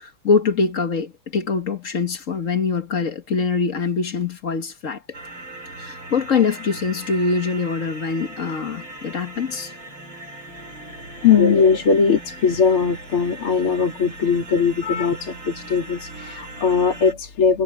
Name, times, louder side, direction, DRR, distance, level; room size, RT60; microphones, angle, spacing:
voice 1, 0.0-5.2 5.8-9.7, left 5 dB, 40° left, 1.6 m, -23 dB
sound 1, 5.1-17.1, right 2 dB, 65° right, 6.9 m, -39 dB
voice 2, 11.2-17.6, left 6 dB, 80° left, 3.9 m, -19 dB
omnidirectional pair, 2.3 m